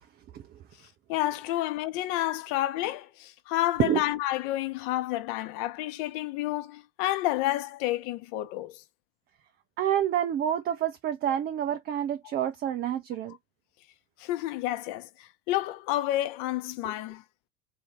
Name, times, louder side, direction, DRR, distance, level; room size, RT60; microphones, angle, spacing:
voice 1, 1.1-8.8 12.2-12.3 14.2-17.2, left 15 dB, 50° left, 0.9 m, -30 dB
voice 2, 9.8-13.4, right 10 dB, 25° right, 0.5 m, -28 dB
3.6 x 2.6 x 4.4 m
figure-of-eight pair, 80°, 40 cm